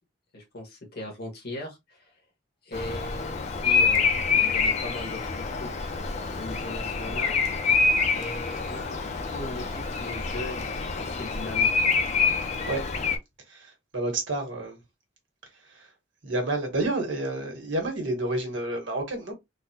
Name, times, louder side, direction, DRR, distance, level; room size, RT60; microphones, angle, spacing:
voice 1, 0.3-2.1 2.6-5.7 6.4-7.4 8.1-11.7, left 1 dB, 55° left, 1.3 m, -39 dB
Bird vocalization bird call bird song, 2.7-13.2, left 5 dB, 35° left, 0.5 m, -26 dB
voice 2, 13.5-14.8 15.7-15.9 16.2-19.3, right 2 dB, 75° right, 1.3 m, -29 dB
3.8 x 2.1 x 2.7 m
head